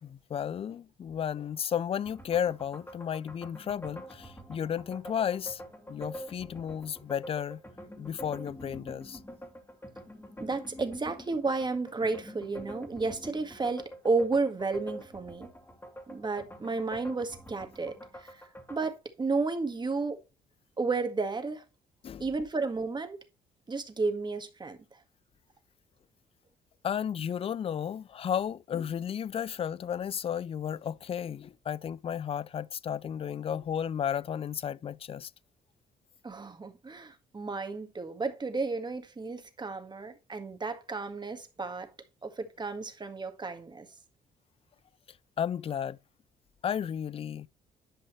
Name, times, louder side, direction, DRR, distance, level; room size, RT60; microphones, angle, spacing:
voice 1, 0.0-5.6 5.9-7.6 8.0-9.2 22.0-22.3 26.8-35.3 45.4-46.0 46.6-47.5, left 8 dB, 35° left, 0.4 m, -33 dB
sound 1, 2.0-18.9, equal, 15° left, 2.4 m, -46 dB
voice 2, 10.4-15.5 16.1-18.4 18.7-20.2 20.8-21.6 22.2-23.2 23.7-24.8 36.2-41.9 42.2-43.9, right 3 dB, 30° right, 1.8 m, -32 dB
11.0 x 5.5 x 3.2 m
supercardioid pair, 60°, 16 cm